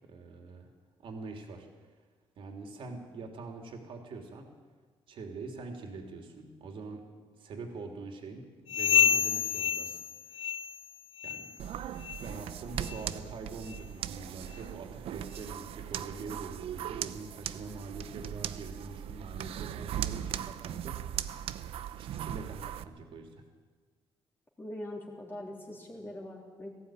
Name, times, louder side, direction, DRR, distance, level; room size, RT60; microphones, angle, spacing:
voice 1, 0.1-0.7 1.0-1.7 2.4-4.5 5.1-10.0 10.3-10.5 11.2-11.5 12.2-21.3 22.0-23.3, right 3 dB, 65° right, 3 dB, 3.2 m, -44 dB
sound 1, 8.7-10.9 11.2-11.6 12.0-12.2 12.8-13.0 13.7-13.8 14.5-14.6, left 8 dB, 80° left, 0.8 m, -29 dB
sound 2, 11.6-22.8, right 10 dB, 85° right, 0.8 m, -39 dB
voice 2, 24.6-26.7, left 1 dB, 20° left, -1 dB, 3.4 m, -42 dB
18.5 x 15.0 x 9.2 m, 1.5 s
cardioid pair, 135°, 10 cm